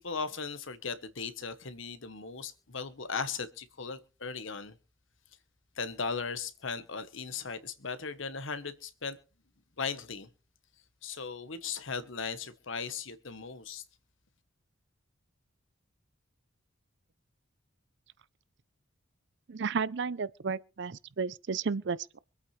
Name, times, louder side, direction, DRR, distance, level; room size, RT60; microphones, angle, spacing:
voice 1, 0.0-4.8 5.8-9.2 9.8-10.3 11.0-13.8, left 5 dB, 65° left, 1.2 m, -37 dB
voice 2, 19.5-22.2, right 5 dB, 55° right, 0.5 m, -33 dB
24.5 x 8.6 x 3.2 m
head